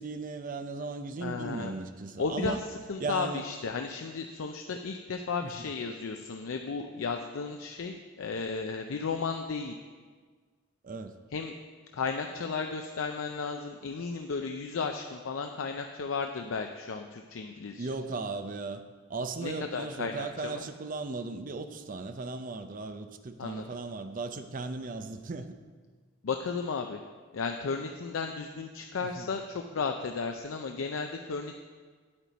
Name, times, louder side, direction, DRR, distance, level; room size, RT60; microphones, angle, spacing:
voice 1, 0.0-2.6 3.0-3.5 5.4-5.7 10.8-11.1 17.8-18.8 19.1-25.6 29.0-29.3, right 3 dB, 40° right, 9 dB, 0.6 m, -37 dB
voice 2, 1.2-1.7 2.2-9.8 11.3-11.5 11.9-17.9 19.4-20.6 23.4-23.6 26.2-27.0 27.3-31.6, left 4 dB, 75° left, 5 dB, 0.5 m, -34 dB
9.1 x 8.7 x 4.1 m, 1.5 s
head